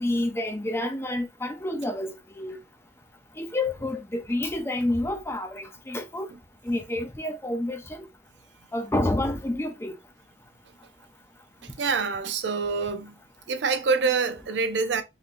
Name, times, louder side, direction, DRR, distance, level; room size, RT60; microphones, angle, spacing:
voice 1, 0.0-2.6 3.4-6.3 6.6-8.1 8.7-9.9, left 1 dB, 15° left, 0.6 m, -29 dB
voice 2, 11.6-13.1 13.5-15.0, right 4 dB, 75° right, 0.5 m, -26 dB
3.7 x 2.9 x 2.5 m
head